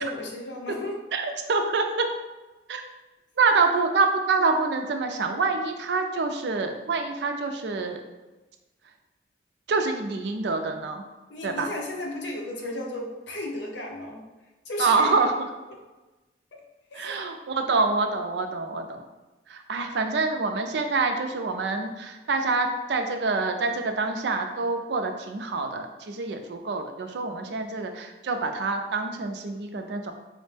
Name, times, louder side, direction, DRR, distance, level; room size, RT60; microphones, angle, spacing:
voice 1, 0.0-1.0 11.3-14.2 14.6-15.3 16.5-16.6 16.9-17.2, left 1 dB, 75° left, 0 dB, 0.7 m, -34 dB
voice 2, 1.1-2.1 2.7-2.8 3.4-8.0 9.7-11.0 11.4-11.7 14.8-15.3 16.9-19.0 19.5-30.1, right 3 dB, 70° right, 5 dB, 0.4 m, -26 dB
4.2 x 2.1 x 3.2 m, 1.1 s
head